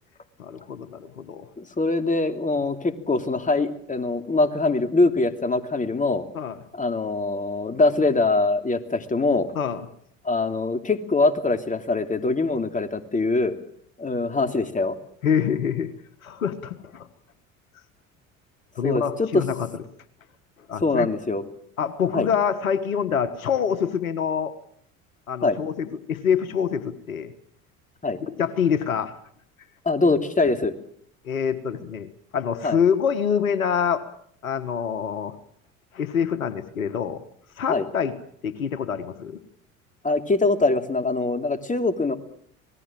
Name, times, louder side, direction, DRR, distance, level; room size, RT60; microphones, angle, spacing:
voice 1, 0.4-1.5 6.3-6.6 9.5-9.8 15.2-15.9 16.2-17.1 18.8-19.6 20.7-21.1 21.8-24.5 25.3-27.3 28.4-29.2 31.2-34.0 34.4-35.3 35.9-37.2 37.6-38.1 38.4-39.4, left 7 dB, 90° left, 12 dB, 1.6 m, -25 dB
voice 2, 1.6-6.2 6.7-9.5 10.2-13.5 14.0-15.0 18.8-19.4 20.8-21.4 22.1-22.3 25.4-25.6 28.0-28.2 29.8-30.7 32.6-32.8 37.7-37.9 40.0-42.1, left 3 dB, 20° left, 7 dB, 3.0 m, -23 dB
26.5 x 19.0 x 7.6 m, 0.64 s
hypercardioid pair, 65°, 40 cm